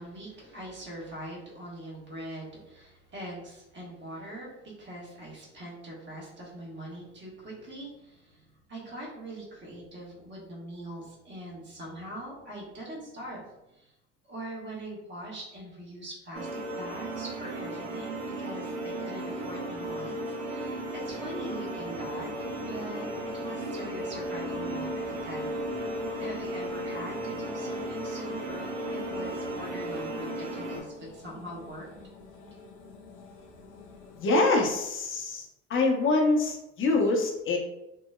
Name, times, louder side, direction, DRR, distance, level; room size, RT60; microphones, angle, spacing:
voice 1, 0.0-13.9 14.2-25.6 26.2-31.9, right 1 dB, 30° right, -3 dB, 1.2 m, -42 dB
sound 1, 16.3-30.8, right 1 dB, 85° right, 0.7 m, -35 dB
sound 2, 20.9-34.3, left 4 dB, 90° left, 0.5 m, -47 dB
voice 2, 34.1-37.6, left 3 dB, 35° left, 1 dB, 0.7 m, -25 dB
2.9 x 2.0 x 2.3 m, 0.89 s
hypercardioid pair, 70°, 36 cm